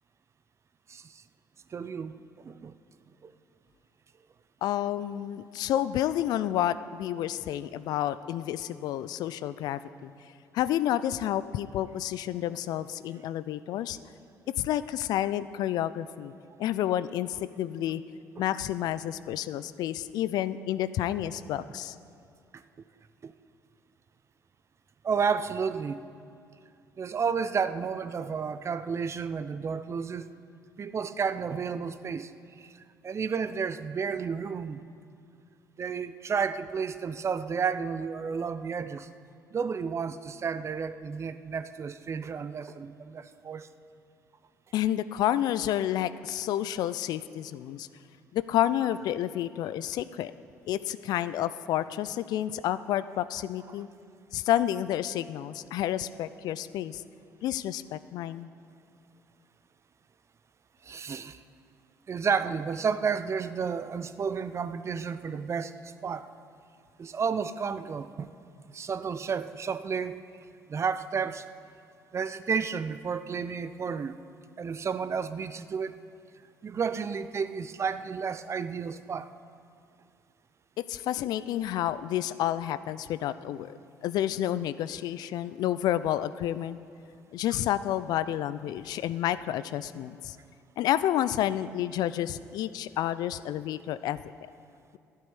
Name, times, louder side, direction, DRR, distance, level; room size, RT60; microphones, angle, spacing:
voice 1, 0.9-1.2 1.7-2.7 3.2-3.3 22.5-22.6 23.2-23.3 25.0-26.0 27.0-30.3 30.8-32.3 32.6-34.8 35.8-39.1 39.5-43.7 60.8-61.4 62.1-66.3 67.0-68.3 68.7-70.2 70.7-71.4 72.1-74.2 74.6-76.0 76.6-79.3, right 6 dB, 40° right, 13 dB, 0.7 m, -31 dB
voice 2, 4.6-10.1 10.5-14.0 14.6-16.3 16.6-18.0 18.4-21.9 44.7-47.9 48.3-50.3 50.7-53.9 54.3-57.0 57.4-58.5 80.8-83.7 84.0-86.8 87.3-90.4 90.8-94.2, left 12 dB, 60° left, 15 dB, 0.5 m, -30 dB
12.0 x 8.3 x 9.6 m, 2.4 s
hypercardioid pair, 55°, 8 cm